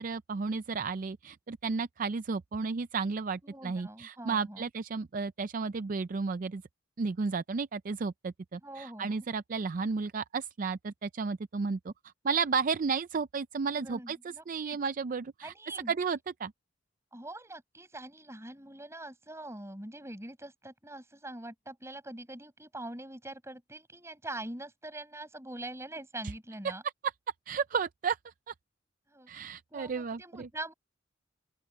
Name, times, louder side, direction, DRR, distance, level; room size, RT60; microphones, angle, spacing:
voice 1, 0.0-6.6 7.0-11.9 12.2-14.2 14.5-15.5 15.9-16.5 27.5-28.5 29.3-30.5, right 5 dB, 45° right, 0.4 m, -33 dB
voice 2, 3.4-4.6 8.6-9.1 13.8-14.8 15.4-15.9 17.1-26.8 29.1-29.3 29.7-30.7, right 1 dB, 15° right, 7.5 m, -43 dB
open air
head